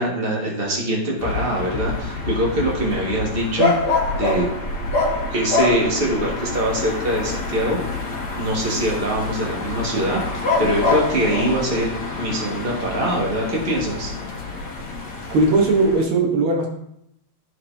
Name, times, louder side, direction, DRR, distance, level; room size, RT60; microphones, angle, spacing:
voice 1, 0.0-4.5 5.3-7.8 8.4-14.1, right 1 dB, 30° right, -3 dB, 1.7 m, -23 dB
sound 1, 1.2-16.0, left 3 dB, 60° left, 1.7 m, -26 dB
voice 2, 15.3-16.7, right 3 dB, 80° right, 0 dB, 1.9 m, -18 dB
13.5 x 4.5 x 2.7 m, 0.75 s
omnidirectional pair, 2.3 m